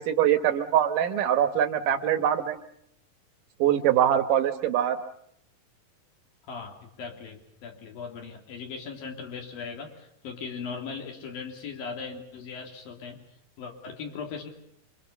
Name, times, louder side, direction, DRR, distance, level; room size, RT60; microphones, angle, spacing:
voice 1, 0.0-2.6 3.6-5.0, right 10 dB, 70° right, 9 dB, 2.7 m, -23 dB
voice 2, 6.5-13.3 13.6-14.5, left 5 dB, 80° left, 2 dB, 4.9 m, -39 dB
27.5 x 24.5 x 7.0 m, 0.73 s
omnidirectional pair, 4.0 m